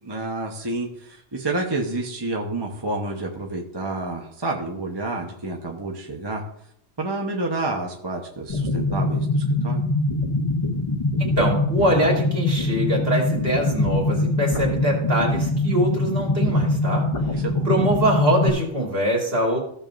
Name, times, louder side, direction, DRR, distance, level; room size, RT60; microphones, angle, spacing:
voice 1, 0.0-6.4 7.0-9.8 17.3-17.7, right 2 dB, 20° right, 0 dB, 0.9 m, -29 dB
sound 1, 8.5-18.5, left 2 dB, 30° left, 1.1 m, -23 dB
voice 2, 11.3-17.1 17.3-19.6, right 1 dB, 50° right, -2 dB, 2.8 m, -23 dB
15.5 x 7.1 x 2.6 m, 0.70 s
omnidirectional pair, 1.3 m